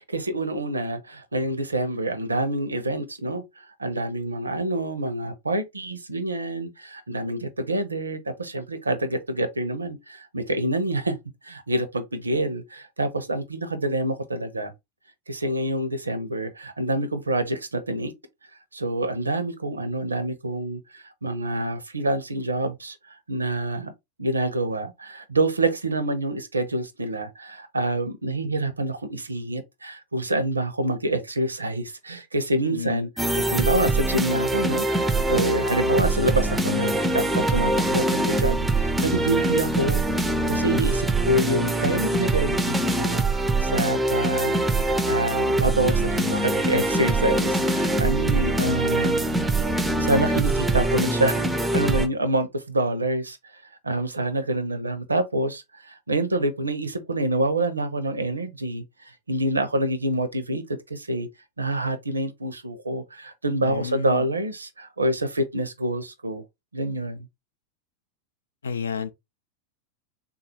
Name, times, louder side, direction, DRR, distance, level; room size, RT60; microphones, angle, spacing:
voice 1, 0.0-11.2 11.4-14.7 15.3-18.1 18.7-23.9 24.2-33.1 33.4-40.0 40.5-44.6 45.1-49.2 50.0-53.4 53.8-58.8 59.3-61.3 61.6-66.4 66.7-67.3, right 1 dB, 80° right, 0.5 m, -27 dB
voice 2, 32.6-33.1 63.6-64.2 68.6-69.1, left 6 dB, 70° left, 0.3 m, -30 dB
sound 1, 33.2-52.1, right 2 dB, 10° right, 0.4 m, -23 dB
3.6 x 2.3 x 2.7 m
figure-of-eight pair, 90°, 0 cm